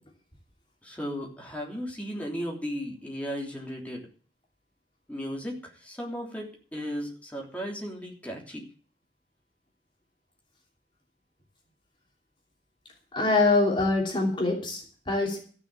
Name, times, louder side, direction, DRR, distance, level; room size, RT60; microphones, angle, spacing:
voice 1, 0.8-4.1 5.1-8.6, equal, 10° left, -2 dB, 3.3 m, -35 dB
voice 2, 13.1-15.4, left 3 dB, 30° left, 0 dB, 3.0 m, -24 dB
14.5 x 6.3 x 8.3 m, 0.43 s
head